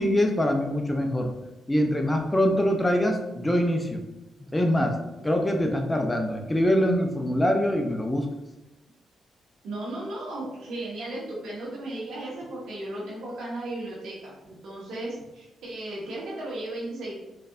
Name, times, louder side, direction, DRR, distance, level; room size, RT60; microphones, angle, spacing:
voice 1, 0.0-1.3 1.7-4.0 4.4-5.0 5.2-8.3, equal, 20° left, 3 dB, 0.6 m, -24 dB
voice 2, 9.6-17.1, right 1 dB, 70° right, -5 dB, 1.5 m, -35 dB
4.0 x 3.2 x 2.6 m, 0.98 s
hypercardioid pair, 50°, 0 cm